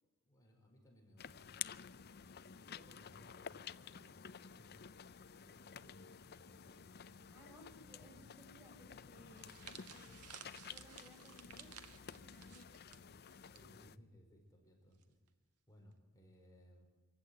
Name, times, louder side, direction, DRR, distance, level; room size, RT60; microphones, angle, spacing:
voice 1, 0.0-1.6 2.7-4.8 5.2-7.1 12.3-12.7 13.4-15.2 15.7-16.8, equal, 15° left, 0 dB, 5.1 m, -64 dB
sound 1, 1.2-14.0, left 8 dB, 45° left, 0.6 m, -52 dB
voice 2, 7.3-10.2 10.7-12.8 13.6-13.7, left 1 dB, 10° right, 2 dB, 5.2 m, -61 dB
sound 2, 9.4-13.6 13.9-14.1 15.0-15.3, right 8 dB, 90° right, 1.6 m, -56 dB
25.5 x 15.0 x 9.6 m, 1.3 s
head